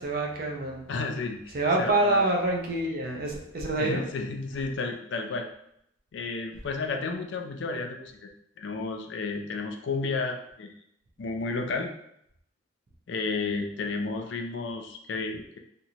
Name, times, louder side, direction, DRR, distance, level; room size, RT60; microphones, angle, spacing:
voice 1, 0.0-0.9 1.5-4.1, right 2 dB, 50° right, 0 dB, 0.5 m, -26 dB
voice 2, 0.9-2.2 3.8-5.5 6.1-8.3 8.6-10.7 11.2-11.9 13.1-15.6, left 3 dB, 70° left, 4 dB, 0.4 m, -32 dB
2.9 x 2.5 x 2.8 m, 0.74 s
head